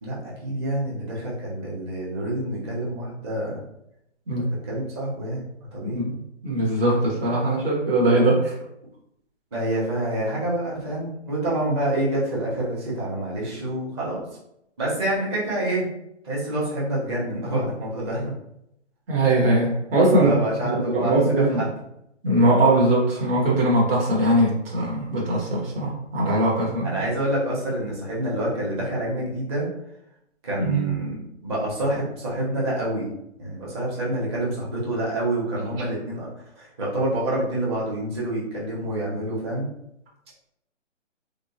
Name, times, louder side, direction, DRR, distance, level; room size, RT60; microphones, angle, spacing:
voice 1, 0.0-3.6 4.4-6.0 9.5-14.2 14.8-15.9 16.2-18.4 20.2-21.7 26.8-29.7 30.4-33.1 33.4-36.3 36.6-39.7, right 1 dB, 20° right, -6 dB, 0.7 m, -27 dB
voice 2, 5.8-6.1 6.4-8.5 19.1-20.3 20.6-21.6 22.2-27.0 30.6-30.9, right 1 dB, 50° right, -4 dB, 1.0 m, -21 dB
3.3 x 2.0 x 2.6 m, 0.79 s
hypercardioid pair, 150°, 37 cm